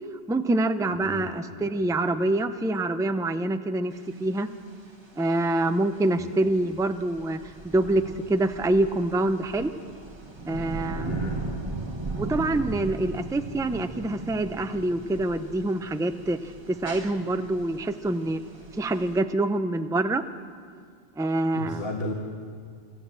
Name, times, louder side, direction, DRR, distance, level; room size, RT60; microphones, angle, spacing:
voice 1, 0.3-4.5 5.1-7.4 7.7-9.7 10.5-11.1 12.2-16.5 16.8-18.4 18.7-20.2 21.2-21.8, right 2 dB, 5° right, 8 dB, 0.4 m, -26 dB
voice 2, 1.0-1.4 6.2-6.3 11.0-11.6 21.5-22.1, left 1 dB, 55° left, 1 dB, 1.9 m, -34 dB
sound 1, 3.9-19.2, right 2 dB, 25° right, 1.5 m, -38 dB
25.5 x 13.5 x 7.5 m, 2.1 s
omnidirectional pair, 1.2 m